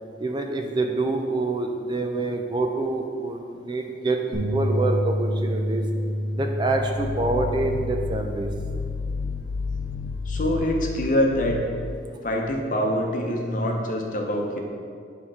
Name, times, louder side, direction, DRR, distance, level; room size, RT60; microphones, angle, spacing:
voice 1, 0.2-5.8 6.3-8.5, right 2 dB, 25° right, 4 dB, 0.4 m, -26 dB
Bass guitar, 4.3-10.6, equal, 70° right, 1.7 m, -29 dB
sound 1, 6.7-12.2, left 5 dB, 75° left, 0.4 m, -32 dB
voice 2, 10.2-11.7 12.2-14.6, equal, 45° left, 1 dB, 0.8 m, -25 dB
8.7 x 3.6 x 4.8 m, 2.3 s
head